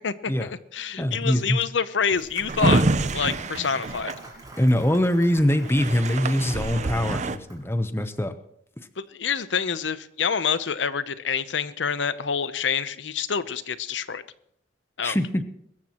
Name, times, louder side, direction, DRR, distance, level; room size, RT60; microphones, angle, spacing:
voice 1, 0.0-2.8 3.1-4.2 9.0-14.2 15.0-15.2, left 6 dB, 85° left, 14 dB, 0.7 m, -27 dB
voice 2, 1.0-1.6 4.6-8.3 15.0-15.4, left 1 dB, 15° left, 10 dB, 0.8 m, -23 dB
Drawer open or close, 2.1-4.9 5.4-5.5 5.6-7.4, right 2 dB, 40° right, 0.6 m, -26 dB
Applause, 2.3-7.8, right 2 dB, 20° right, 5.2 m, -47 dB
22.5 x 13.5 x 3.0 m, 0.71 s
head